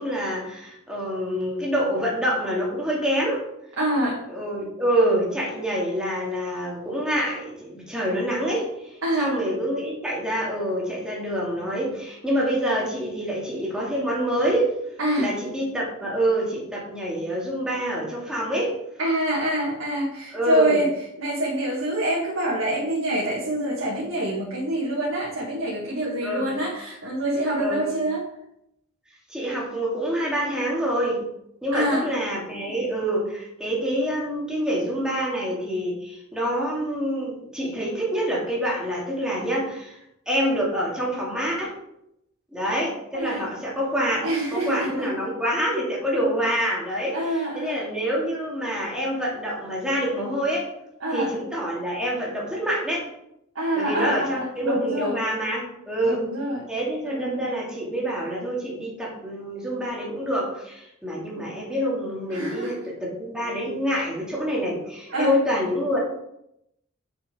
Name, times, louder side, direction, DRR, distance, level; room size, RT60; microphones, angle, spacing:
voice 1, 0.0-3.4 4.3-8.7 9.2-14.7 15.2-18.7 20.3-20.8 26.2-26.5 27.6-27.8 29.3-31.2 31.6-40.0 40.3-41.7 42.5-44.2 44.5-47.2 47.5-50.7 51.1-53.0 53.8-56.2 56.7-66.0, equal, 5° right, -5 dB, 2.6 m, -26 dB
voice 2, 3.8-4.2 9.0-9.3 15.0-15.3 19.0-28.3 31.7-32.1 43.1-43.4 44.2-45.3 47.1-47.8 51.0-51.3 53.6-55.2 56.0-56.7 57.1-57.6 61.3-61.4 62.3-62.8 63.9-64.1 65.1-65.4, right 1 dB, 85° right, -4 dB, 1.8 m, -26 dB
7.3 x 6.1 x 5.1 m, 0.79 s
head